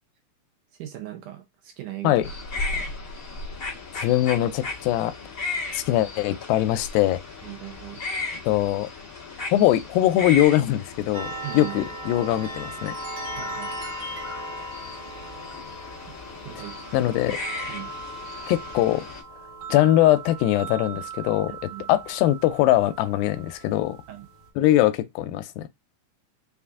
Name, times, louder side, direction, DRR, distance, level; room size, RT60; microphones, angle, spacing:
voice 1, 0.7-2.3 2.5-2.9 7.4-8.0 11.4-11.8 13.4-13.7 16.4-16.8 17.3-17.4 17.7-17.9 21.5-21.9 24.1-24.3, right 14 dB, 75° right, 2.1 m, -39 dB
sound 1, 2.2-19.2, left 3 dB, 35° left, 1.4 m, -36 dB
voice 2, 4.0-5.1 5.7-7.2 8.5-8.9 9.5-12.9 16.9-17.3 18.5-19.1 19.7-21.6 21.9-24.0 24.6-25.7, left 14 dB, 85° left, 2.3 m, -22 dB
sound 2, 11.1-24.5, right 2 dB, 45° right, 1.8 m, -38 dB
5.5 x 2.5 x 3.5 m
omnidirectional pair, 4.1 m